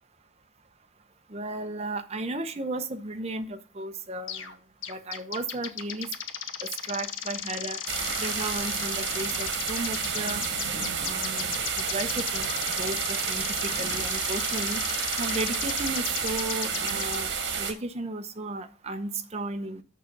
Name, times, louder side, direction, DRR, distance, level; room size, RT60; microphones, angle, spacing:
voice 1, 1.3-4.6 4.9-6.1 6.6-7.8 8.2-10.4 11.0-12.5 12.8-14.8 15.2-19.8, right 2 dB, 35° right, 8 dB, 0.8 m, -34 dB
sound 1, 4.3-4.5 4.8-17.2, left 9 dB, 85° left, 0.9 m, -36 dB
sound 2, 7.9-17.7, right 6 dB, 65° right, 1.7 m, -30 dB
6.6 x 6.6 x 5.2 m, 0.38 s
head